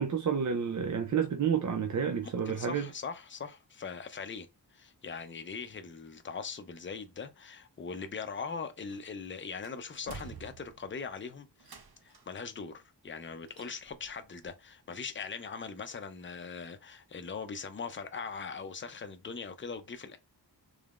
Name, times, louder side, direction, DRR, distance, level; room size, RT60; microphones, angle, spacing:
voice 1, 0.0-2.9, right 7 dB, 45° right, 0.5 m, -30 dB
voice 2, 2.2-20.2, left 5 dB, 30° left, 0.5 m, -41 dB
sound 1, 8.9-9.3 9.6-11.0 11.6-12.4 13.5-14.1 14.4-14.5, right 4 dB, 60° right, 0.9 m, -49 dB
3.5 x 3.3 x 2.4 m
wide cardioid pair, 115°, 43 cm